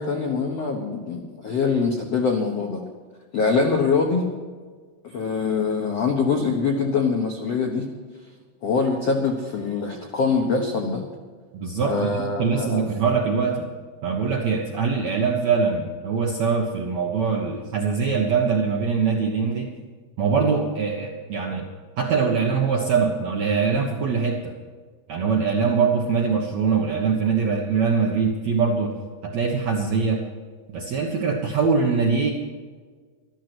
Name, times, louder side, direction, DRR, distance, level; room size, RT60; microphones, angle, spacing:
voice 1, 0.0-2.8 3.3-4.3 5.0-7.8 8.6-11.0 11.8-12.8, left 4 dB, 80° left, 2 dB, 1.4 m, -23 dB
voice 2, 11.5-12.1 12.4-13.6 14.0-19.7 20.2-21.7 22.0-24.5 25.1-29.0 29.2-30.2 30.7-32.3, right 5 dB, 65° right, -1 dB, 1.7 m, -23 dB
13.5 x 13.5 x 6.2 m, 1.5 s
omnidirectional pair, 5.2 m